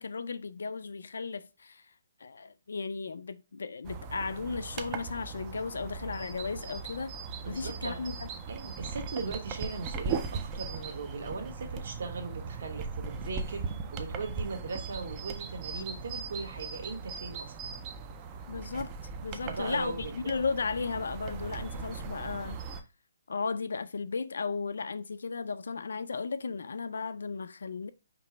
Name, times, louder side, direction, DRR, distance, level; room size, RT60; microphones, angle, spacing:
voice 1, 0.0-1.9 2.2-7.1 7.5-8.3 18.5-18.9 19.2-22.6 23.3-27.9, left 4 dB, 80° left, 0.4 m, -35 dB
sound 1, 3.8-22.8, right 5 dB, 15° right, 0.3 m, -39 dB
voice 2, 7.4-8.0 8.5-13.6 13.9-17.8 19.4-20.1, right 4 dB, 55° right, 1.1 m, -39 dB
5.2 x 2.0 x 4.3 m
hypercardioid pair, 175°, 0 cm